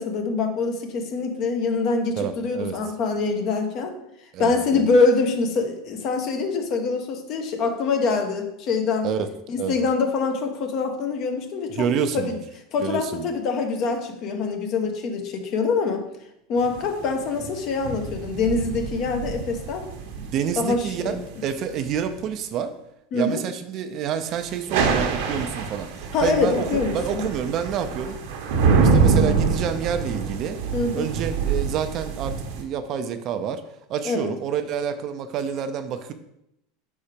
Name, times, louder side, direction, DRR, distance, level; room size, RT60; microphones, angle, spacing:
voice 1, 0.0-3.9 4.4-9.1 9.5-11.9 12.1-12.4 12.7-16.0 16.5-19.9 20.6-21.2 23.1-23.4 26.1-27.3 30.7-31.1 34.0-34.3, left 4 dB, 50° left, 5 dB, 1.0 m, -24 dB
voice 2, 2.2-2.8 4.3-4.8 9.0-9.3 9.6-9.8 11.8-12.4 12.8-13.2 20.2-21.2 21.4-22.7 23.1-28.2 28.8-30.6 30.9-33.6 33.9-36.1, right 8 dB, 45° right, 9 dB, 0.5 m, -28 dB
sound 1, 16.6-22.1 24.5-32.6, right 5 dB, 75° right, 1.0 m, -25 dB
4.7 x 4.2 x 5.1 m, 0.80 s
supercardioid pair, 135°, 0 cm